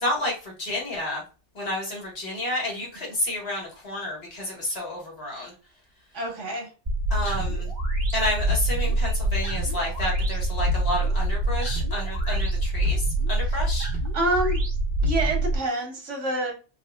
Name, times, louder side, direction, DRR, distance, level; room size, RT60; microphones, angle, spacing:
voice 1, 0.0-1.2 1.5-5.5 7.1-7.7 8.1-13.0 13.3-13.9, left 1 dB, 55° left, -2 dB, 1.6 m, -30 dB
voice 2, 6.1-6.7 13.4-13.6 14.1-14.6 15.0-16.5, right 1 dB, 75° right, 2 dB, 1.5 m, -27 dB
sound 1, 6.8-15.6, right 1 dB, 35° right, 1.5 m, -25 dB
4.0 x 2.6 x 2.2 m, 0.34 s
omnidirectional pair, 1.3 m